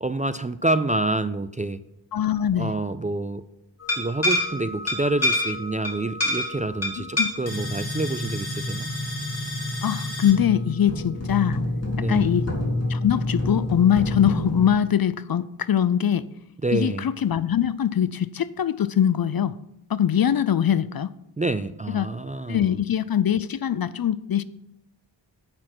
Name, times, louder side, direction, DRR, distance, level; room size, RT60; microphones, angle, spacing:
voice 1, 0.0-1.8 2.6-3.4 4.0-8.9 12.0-12.3 16.6-17.1 21.4-22.7, right 2 dB, 20° right, 12 dB, 0.3 m, -27 dB
voice 2, 2.1-2.7 7.0-7.3 9.8-11.6 12.1-12.5 12.9-16.3 16.7-19.6 19.9-21.1 21.9-22.1 22.5-24.4, left 9 dB, 50° left, 17 dB, 0.5 m, -22 dB
sound 1, 3.8-14.7, left 1 dB, 30° left, 2.3 m, -28 dB
8.8 x 5.7 x 6.0 m, 0.84 s
wide cardioid pair, 55°, 46 cm